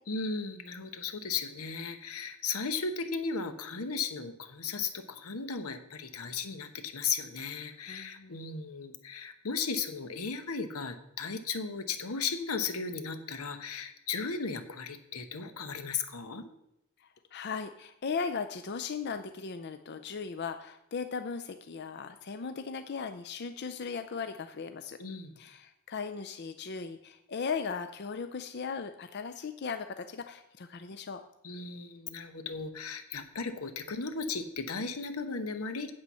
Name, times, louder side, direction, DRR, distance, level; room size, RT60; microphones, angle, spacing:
voice 1, 0.1-16.5 25.0-25.3 31.4-35.9, left 5 dB, 90° left, 9 dB, 1.1 m, -36 dB
voice 2, 7.9-8.4 17.0-25.0 25.4-31.2, left 5 dB, 50° left, 9 dB, 0.5 m, -37 dB
8.8 x 7.6 x 5.6 m, 0.83 s
head